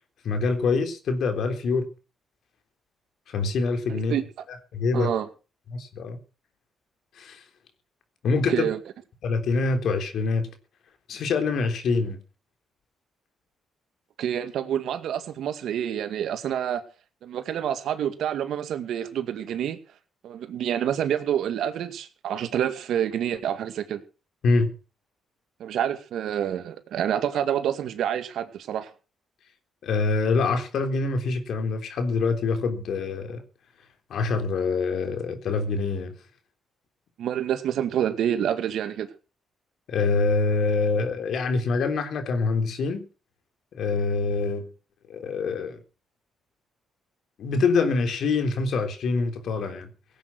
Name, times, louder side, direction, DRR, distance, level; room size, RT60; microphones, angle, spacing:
voice 1, 0.2-1.9 3.3-4.2 4.7-5.1 5.7-6.2 7.2-7.4 8.2-8.7 9.2-10.5 11.1-12.2 24.4-24.7 29.8-33.4 34.1-36.1 39.9-43.0 43.7-44.7 45.1-45.8 47.4-49.9, left 4 dB, 70° left, 3.5 m, -25 dB
voice 2, 3.9-4.2 4.9-5.3 8.5-8.8 14.2-16.8 17.2-19.8 20.2-24.0 25.6-28.9 37.2-39.1, right 10 dB, 75° right, 2.1 m, -27 dB
17.5 x 9.0 x 6.2 m
cardioid pair, 90°, 0 cm